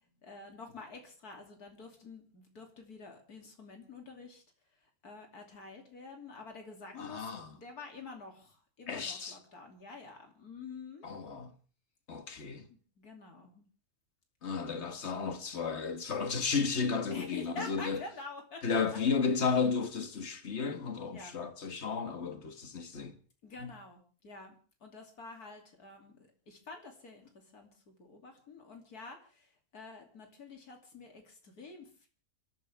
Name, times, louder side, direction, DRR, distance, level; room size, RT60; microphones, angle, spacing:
voice 1, 0.2-4.4 5.0-11.1 12.7-13.6 17.1-19.0 21.1-21.3 23.4-24.5 24.8-32.1, left 3 dB, 80° left, 3.4 m, -48 dB
voice 2, 7.0-7.5 8.9-9.4 11.0-11.5 12.1-12.7 14.4-18.0 18.6-23.2 23.6-23.7, left 5 dB, 45° left, 1.7 m, -33 dB
28.5 x 14.0 x 3.5 m
omnidirectional pair, 1.6 m